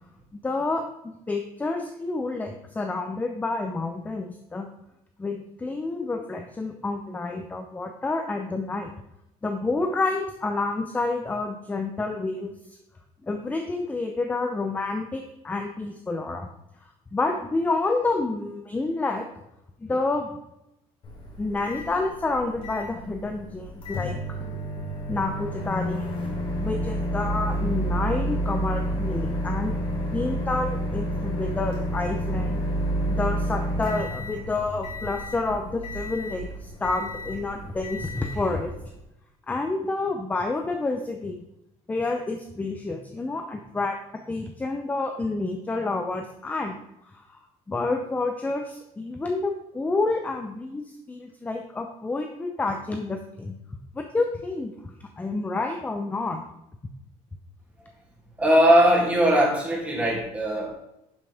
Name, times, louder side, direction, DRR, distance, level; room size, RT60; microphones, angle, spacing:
voice 1, 0.3-0.9 1.3-4.7 5.2-8.9 9.4-12.5 13.2-16.5 17.1-19.3 19.8-20.3 21.4-24.4 25.1-26.1 26.6-32.6 33.1-38.7 39.5-41.4 41.9-44.0 44.3-46.8 47.1-53.6 53.9-56.4, left 3 dB, 10° left, 5 dB, 0.6 m, -29 dB
Microwave oven, 21.0-39.0, equal, 45° left, 3.4 m, -30 dB
voice 2, 58.4-60.7, right 1 dB, 10° right, -3 dB, 2.7 m, -20 dB
11.5 x 5.9 x 3.5 m, 0.86 s
cardioid pair, 140°, 13 cm